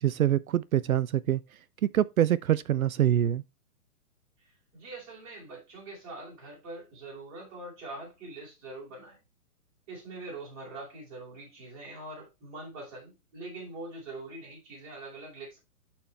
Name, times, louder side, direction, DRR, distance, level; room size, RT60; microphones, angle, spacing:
voice 1, 0.0-1.4 1.8-3.4, right 11 dB, 65° right, 0.5 m, -25 dB
voice 2, 4.4-9.2 9.9-15.6, right 2 dB, 25° right, 4.4 m, -43 dB
12.5 x 4.4 x 3.3 m
hypercardioid pair, 180°, 45 cm